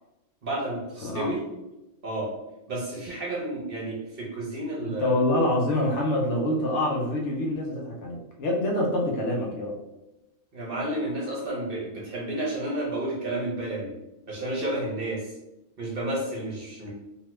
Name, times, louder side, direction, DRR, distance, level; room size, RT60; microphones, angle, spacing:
voice 1, 0.4-1.4 2.0-2.3 2.7-5.1 10.5-13.9 14.3-15.3 15.8-16.9, right 1 dB, 50° right, -4 dB, 0.9 m, -31 dB
voice 2, 4.8-9.8, left 1 dB, 65° left, -1 dB, 0.9 m, -26 dB
2.8 x 2.3 x 3.0 m, 0.96 s
omnidirectional pair, 1.4 m